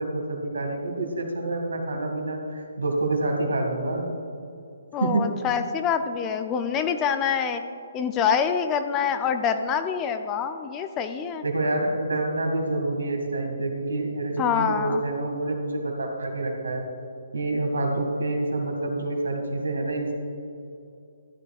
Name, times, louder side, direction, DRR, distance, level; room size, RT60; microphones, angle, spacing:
voice 1, 0.0-4.1 5.0-5.2 11.4-16.8 17.3-20.1, right 2 dB, 75° right, 2 dB, 1.9 m, -27 dB
voice 2, 4.9-7.6 7.9-11.4 14.4-15.0, left 7 dB, 20° left, 8 dB, 0.5 m, -26 dB
14.0 x 10.5 x 2.4 m, 2.6 s
figure-of-eight pair, 135°, 0 cm